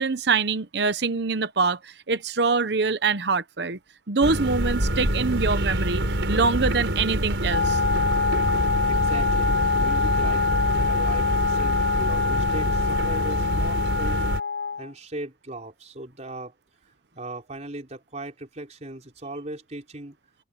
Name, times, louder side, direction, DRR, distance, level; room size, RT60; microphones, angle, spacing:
voice 1, 0.0-3.8 4.1-6.0 6.3-7.8, right 4 dB, 65° right, 0.9 m, -24 dB
sound 1, 4.2-14.4, right 1 dB, 90° right, 4.4 m, -26 dB
Wind instrument woodwind instrument, 7.5-14.9, left 5 dB, 80° left, 2.9 m, -25 dB
voice 2, 8.9-10.5 10.9-14.3 14.7-16.5 16.8-20.2, right 1 dB, 40° right, 4.8 m, -38 dB
open air
head